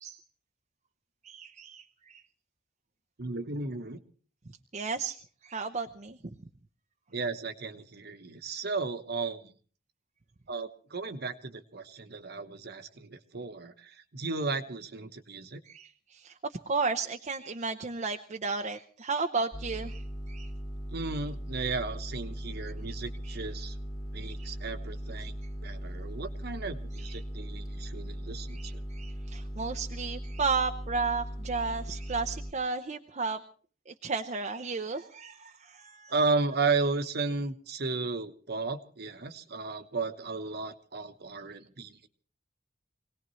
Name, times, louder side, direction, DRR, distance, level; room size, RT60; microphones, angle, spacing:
voice 1, 1.2-2.2 4.7-6.2 15.7-20.0 20.3-20.5 24.2-24.5 27.0-27.2 28.5-33.4 33.9-36.1, right 4 dB, 40° right, 5 dB, 0.7 m, -33 dB
voice 2, 3.2-4.0 7.1-9.5 10.5-15.6 20.9-23.8 24.1-25.4 25.6-28.8 36.1-42.1, right 4 dB, 60° right, 8 dB, 1.1 m, -34 dB
sound 1, 19.5-32.5, equal, 20° left, 1.9 m, -39 dB
25.0 x 18.0 x 3.2 m, 0.42 s
head